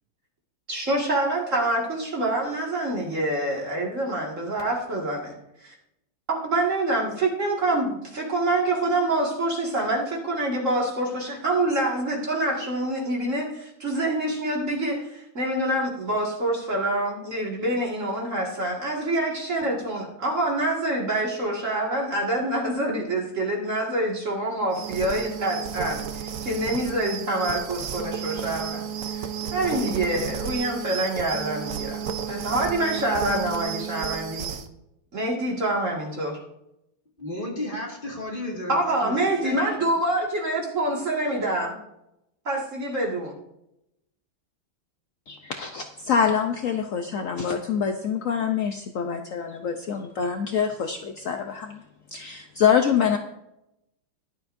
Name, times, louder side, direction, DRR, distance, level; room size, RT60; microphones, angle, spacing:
voice 1, 0.7-5.4 5.6-5.7 6.3-28.8 29.1-32.0 32.3-34.5 35.1-36.3 38.7-41.8 42.5-43.3, right 1 dB, 40° right, -2 dB, 2.2 m, -26 dB
sound 1, 24.7-34.7, right 8 dB, 65° right, 0.8 m, -32 dB
voice 2, 37.2-39.2 39.4-39.6, left 1 dB, 25° left, -2 dB, 2.2 m, -33 dB
voice 3, 45.3-51.8 52.1-53.2, left 7 dB, 70° left, 5 dB, 0.7 m, -25 dB
15.0 x 11.5 x 2.6 m, 0.85 s
omnidirectional pair, 2.3 m